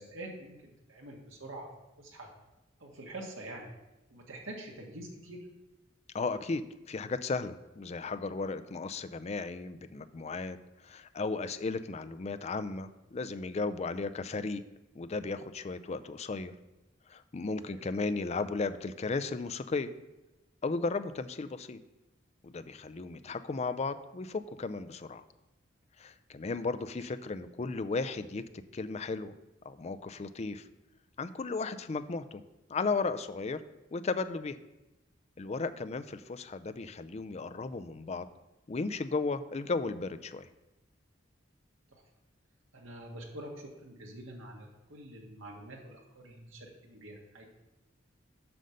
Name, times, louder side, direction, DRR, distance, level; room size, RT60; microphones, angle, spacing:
voice 1, 0.0-1.7 2.0-2.3 2.8-3.7 4.1-5.4 17.7-17.8 26.6-26.7 41.9-42.0 42.7-47.4, right 1 dB, 85° right, 0 dB, 1.8 m, -46 dB
voice 2, 6.1-10.6 10.8-14.6 14.9-16.5 17.1-19.9 20.6-21.8 22.4-25.2 26.0-28.4 28.7-29.3 29.6-30.7 31.2-32.4 32.7-33.6 33.9-34.6 35.4-38.3 38.7-40.5, left 3 dB, 35° left, 12 dB, 0.4 m, -35 dB
7.7 x 5.4 x 6.5 m, 0.99 s
head